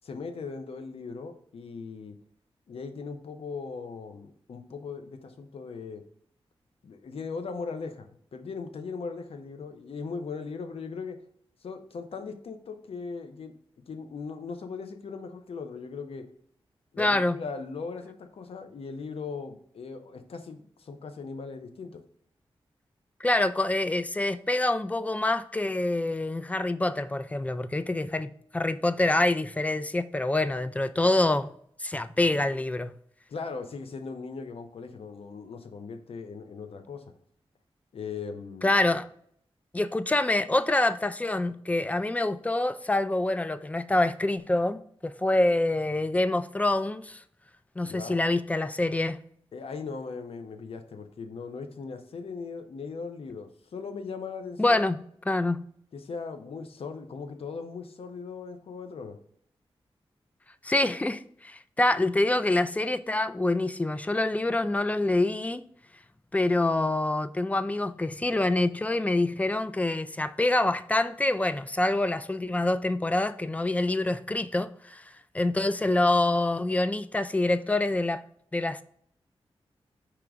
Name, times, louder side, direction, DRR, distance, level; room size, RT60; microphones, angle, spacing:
voice 1, 0.0-2.2 2.7-6.0 6.8-8.1 8.3-11.2 11.6-13.5 13.9-16.2 16.9-22.0 33.3-37.1 37.9-38.8 47.8-48.2 49.5-54.9 55.9-59.2, left 4 dB, 70° left, 0.6 m, -39 dB
voice 2, 17.0-17.4 23.2-31.5 31.8-32.9 38.6-39.1 39.7-47.2 47.8-49.2 54.6-55.6 60.6-65.6 66.3-75.0 75.3-78.2 78.5-78.8, left 2 dB, 15° left, 0.3 m, -26 dB
4.8 x 3.0 x 3.5 m
cardioid pair, 55°, 10 cm